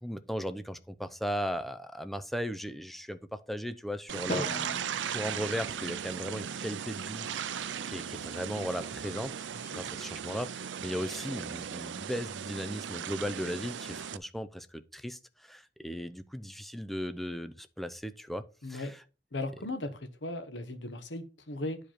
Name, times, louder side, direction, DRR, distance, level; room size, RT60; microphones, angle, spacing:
voice 1, 0.0-4.5 5.0-7.3 7.8-9.3 9.7-19.0, equal, ahead, 0.6 m, -37 dB
sound 1, 4.1-14.2, right 8 dB, 80° right, 0.5 m, -37 dB
Drum, 4.3-6.6, left 1 dB, 40° left, 1.5 m, -40 dB
voice 2, 18.6-18.9 19.3-21.8, left 2 dB, 75° left, 1.2 m, -37 dB
10.5 x 5.1 x 4.4 m
head